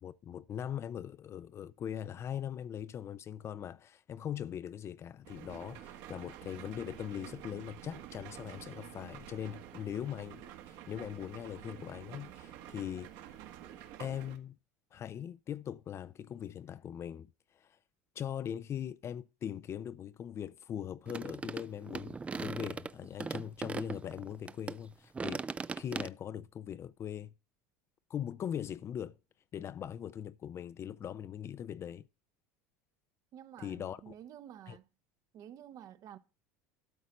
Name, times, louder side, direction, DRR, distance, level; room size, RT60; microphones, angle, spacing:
voice 1, 0.0-13.1 14.0-14.6 14.9-17.3 17.5-17.7 18.2-25.4 25.8-27.3 28.1-29.2 29.5-32.1 33.6-34.1 34.7-34.8, left 9 dB, 35° left, 0.5 m, -41 dB
sound 1, 5.2-14.4, right 11 dB, 65° right, 1.7 m, -49 dB
sound 2, 21.1-24.8 25.1-26.1, right 4 dB, 15° right, 0.4 m, -39 dB
voice 2, 33.3-34.9 35.3-36.2, right 10 dB, 45° right, 0.9 m, -50 dB
12.5 x 4.2 x 7.8 m
supercardioid pair, 110°, 8 cm